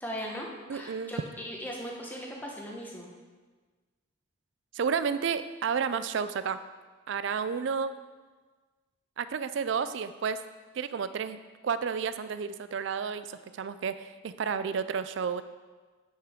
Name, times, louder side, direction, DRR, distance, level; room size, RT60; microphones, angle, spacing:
voice 1, 0.0-3.1, equal, 10° left, -2 dB, 1.0 m, -38 dB
voice 2, 0.7-1.1 4.7-6.6 7.1-7.9 9.2-10.5 10.7-15.4, right 6 dB, 60° right, 12 dB, 0.3 m, -31 dB
9.3 x 5.8 x 3.6 m, 1.4 s
head